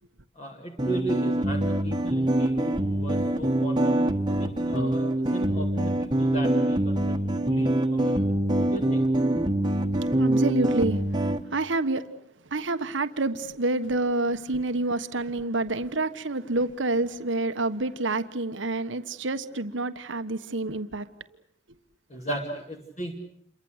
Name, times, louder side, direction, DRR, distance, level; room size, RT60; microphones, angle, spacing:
voice 1, 0.4-7.2 7.4-9.1 22.1-23.2, right 1 dB, 35° left, 2.7 m, -36 dB
sound 1, 0.8-11.4, right 1 dB, 25° right, 1.5 m, -24 dB
voice 2, 10.1-12.1 12.5-21.1, right 2 dB, 80° right, 1.3 m, -28 dB
28.5 x 23.5 x 8.1 m
head